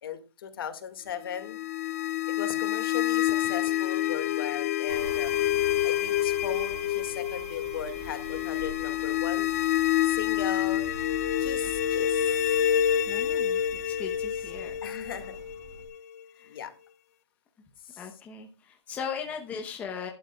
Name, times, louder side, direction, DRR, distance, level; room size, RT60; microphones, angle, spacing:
voice 1, 0.0-1.6 2.4-5.3 5.8-9.5 10.0-10.8 11.4-12.3 14.8-15.4 16.5-16.7 17.8-18.0, left 8 dB, 55° left, 8 dB, 2.0 m, -37 dB
sound 1, 1.3-16.2, left 11 dB, 35° left, 0.4 m, -28 dB
sound 2, 4.9-15.9, right 3 dB, 45° right, 4.7 m, -46 dB
voice 2, 13.1-14.8 16.3-16.6 18.0-20.1, left 6 dB, 10° left, 3 dB, 0.9 m, -38 dB
15.5 x 11.5 x 2.3 m, 0.30 s
hypercardioid pair, 170°, 14 cm